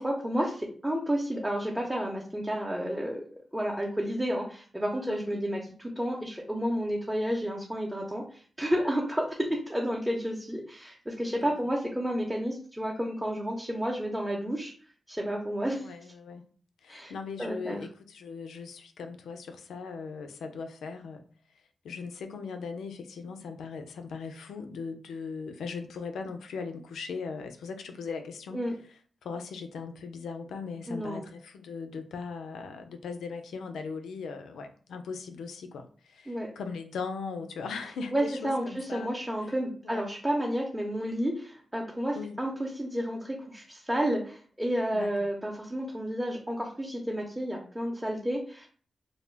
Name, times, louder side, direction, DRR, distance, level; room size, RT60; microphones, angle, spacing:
voice 1, 0.0-3.3 3.5-14.7 15.1-15.9 16.9-17.1 17.4-17.8 28.5-28.7 30.9-31.3 36.3-36.5 38.1-48.7, equal, 10° right, -2 dB, 0.6 m, -31 dB
voice 2, 5.1-5.4 11.2-11.5 15.8-16.5 16.8-21.2 21.8-28.6 29.2-39.2 39.4-39.5 39.8-40.1 42.2-42.4 44.9-45.3, left 5 dB, 85° left, 7 dB, 0.3 m, -39 dB
2.1 x 2.1 x 3.2 m, 0.43 s
supercardioid pair, 45°, 0 cm